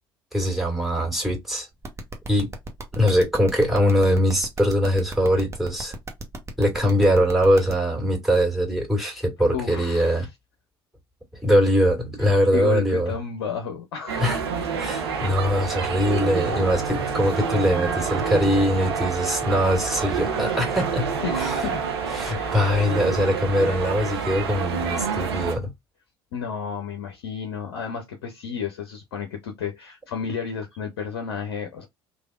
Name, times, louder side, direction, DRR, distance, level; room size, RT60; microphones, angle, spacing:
voice 1, 0.3-1.7 2.3-2.5 2.9-6.0 6.6-10.3 11.4-13.1 14.2-14.4 14.8-21.6 22.1-25.7, equal, ahead, 2.1 m, -22 dB
sound 1, 1.8-7.7, right 2 dB, 20° right, 1.0 m, -35 dB
voice 2, 9.5-10.3 12.2-14.3 16.3-16.5 21.2-21.8 22.3-22.6 26.3-31.8, left 7 dB, 75° left, 0.6 m, -32 dB
sound 2, 14.1-25.6, right 6 dB, 80° right, 0.7 m, -28 dB
Wind instrument woodwind instrument, 14.6-23.9, right 5 dB, 50° right, 0.8 m, -35 dB
3.2 x 2.4 x 2.4 m
figure-of-eight pair, 60°, 13 cm